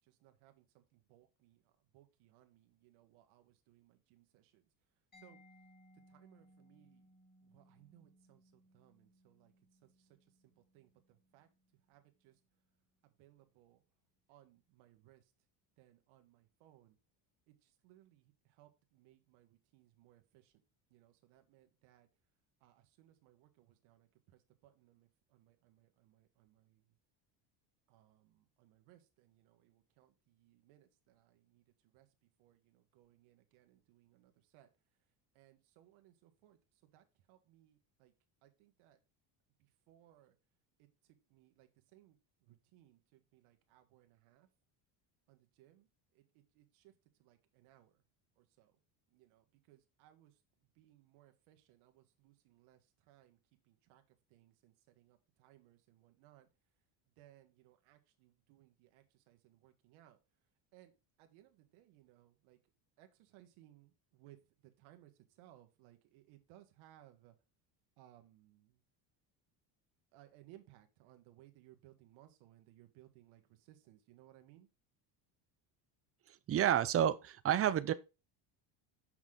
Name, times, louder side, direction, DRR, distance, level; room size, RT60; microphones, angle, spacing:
voice 1, 0.0-1.6 1.9-4.6 5.2-5.4 6.1-7.1 7.4-8.4 8.7-9.5 10.4-11.5 11.9-12.3 13.2-13.8 14.3-15.2 15.8-16.9 17.5-17.6 17.8-20.5 20.9-22.1 22.6-26.8 27.9-31.6 31.9-32.1 32.4-34.7 35.3-36.6 36.9-38.1 38.4-39.0 39.9-40.3 40.8-40.9 41.3-42.2 42.5-44.5 45.3-45.9 46.1-46.2 46.5-46.9 47.2-47.9 48.4-48.7 49.1-50.3 50.8-52.8 53.1-53.4 53.7-54.0 54.3-56.5 57.2-60.2 60.7-60.9 61.2-62.6 63.0-64.4 64.8-65.1 65.4-67.3 68.0-68.8 70.1-74.7, right 14 dB, 80° right, 1.5 m, -65 dB
Mallet percussion, 5.1-12.7, equal, 20° left, 3.2 m, -66 dB
voice 2, 76.5-77.9, right 10 dB, 30° right, 0.5 m, -30 dB
6.3 x 5.9 x 3.7 m
cardioid pair, 125°, 48 cm